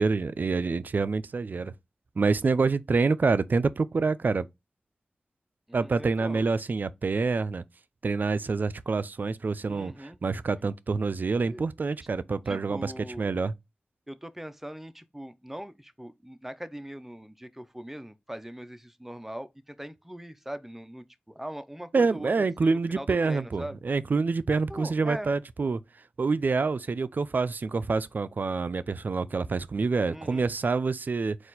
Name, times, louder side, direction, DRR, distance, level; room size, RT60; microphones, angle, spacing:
voice 1, 0.0-1.7 2.2-4.5 5.7-7.6 8.0-12.9 13.2-13.5 21.9-25.8 26.2-31.4, right 4 dB, 60° right, 0.4 m, -27 dB
voice 2, 5.7-6.4 9.6-10.2 11.5-11.6 12.5-13.3 14.1-21.0 21.3-23.8 24.7-25.3 30.1-30.5, right 1 dB, 10° right, 0.6 m, -41 dB
4.2 x 2.4 x 3.9 m
cardioid pair, 40°, 3 cm